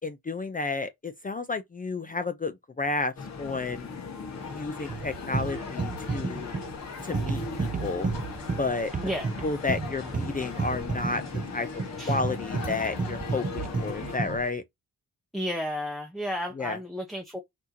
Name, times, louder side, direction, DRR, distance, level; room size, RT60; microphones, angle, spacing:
voice 1, 0.0-3.9 4.5-6.5 7.0-8.1 8.6-8.9 9.4-11.2 11.5-11.7 12.1-14.6 16.5-16.8, left 3 dB, 25° left, 0.6 m, -31 dB
sound 1, 3.2-14.2, left 5 dB, 50° left, 1.4 m, -39 dB
sound 2, 4.3-14.5, left 4 dB, 70° left, 2.7 m, -44 dB
sound 3, 4.9-14.5, right 4 dB, 25° right, 0.5 m, -32 dB
voice 2, 15.3-17.4, equal, ahead, 0.9 m, -32 dB
5.9 x 2.8 x 2.8 m
cardioid pair, 100°, 35 cm